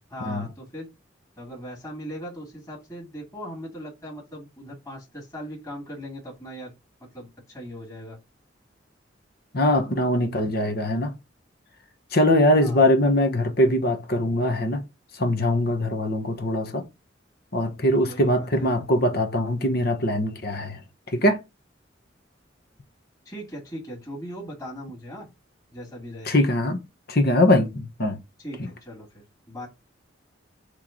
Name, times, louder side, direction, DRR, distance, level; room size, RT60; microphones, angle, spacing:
voice 1, 0.1-0.9 1.4-6.7 7.1-8.2 12.6-12.8 18.0-18.7 23.2-25.3 25.7-26.3 28.4-29.7, equal, 20° left, 2.5 m, -39 dB
voice 2, 9.5-11.1 12.1-14.8 15.1-16.8 17.5-20.8 21.1-21.4 26.2-26.8 27.1-28.2 28.6-28.7, left 1 dB, 55° left, 1.2 m, -22 dB
6.6 x 3.2 x 5.0 m
head